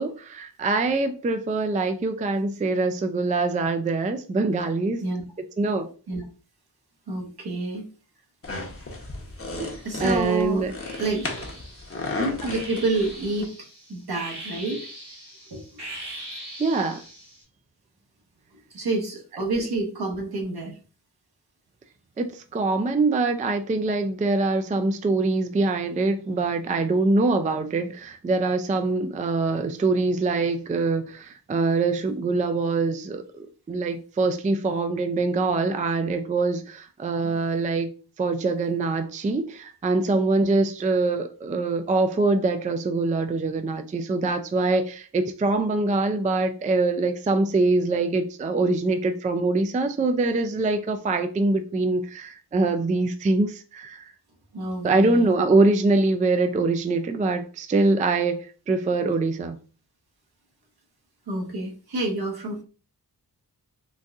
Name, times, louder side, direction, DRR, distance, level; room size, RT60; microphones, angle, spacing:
voice 1, 0.0-5.0 5.6-5.9 9.6-10.7 16.6-17.0 22.2-37.9 38.2-54.1 54.8-59.6, right 3 dB, 20° right, 0.3 m, -24 dB
voice 2, 7.1-7.9 9.8-10.7 10.9-11.5 12.2-13.5 13.9-14.9 15.5-15.8 18.7-20.8 54.5-55.3 61.3-62.6, right 2 dB, 70° right, 1.2 m, -28 dB
sound 1, 8.4-13.5, left 3 dB, 35° left, 0.8 m, -34 dB
sound 2, 9.4-10.2 10.8-17.4, right 1 dB, 90° right, 1.3 m, -41 dB
3.9 x 2.6 x 2.3 m
wide cardioid pair, 65°, 40 cm